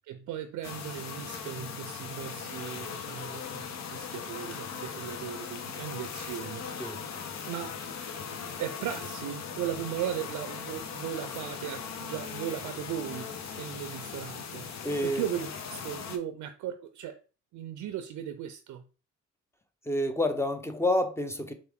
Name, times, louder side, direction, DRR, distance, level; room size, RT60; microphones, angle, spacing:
voice 1, 0.0-7.0 7.5-7.8 8.6-17.2 17.5-18.8, right 10 dB, 75° right, 0.5 m, -37 dB
sound 1, 0.6-16.2, left 6 dB, 65° left, 0.8 m, -39 dB
voice 2, 14.8-15.3 19.8-21.5, left 1 dB, 10° left, 0.7 m, -28 dB
4.5 x 2.5 x 3.5 m
cardioid pair, 90°, 30 cm